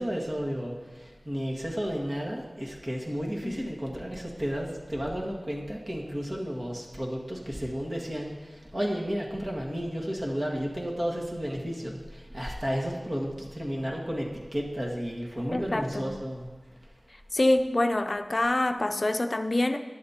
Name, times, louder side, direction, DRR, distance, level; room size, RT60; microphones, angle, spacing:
voice 1, 0.0-16.5, equal, 40° right, -2 dB, 1.8 m, -32 dB
voice 2, 15.5-16.1 17.3-19.8, left 1 dB, 50° left, 8 dB, 0.6 m, -26 dB
12.0 x 10.5 x 2.9 m, 1.3 s
wide cardioid pair, 45°, 0 cm